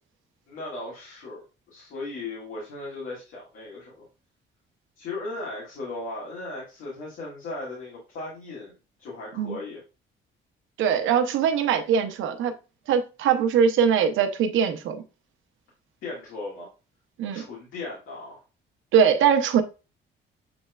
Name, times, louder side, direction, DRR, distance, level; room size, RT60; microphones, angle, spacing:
voice 1, 0.5-1.4 1.7-4.0 5.0-8.7 9.0-9.8 16.0-16.7 17.3-18.4, left 2 dB, 80° left, 1.9 m, -37 dB
voice 2, 10.8-12.5 12.9-15.0 17.2-17.4 18.9-19.6, right 7 dB, 80° right, 0.7 m, -21 dB
7.0 x 3.1 x 2.3 m
cardioid pair, 90°, 20 cm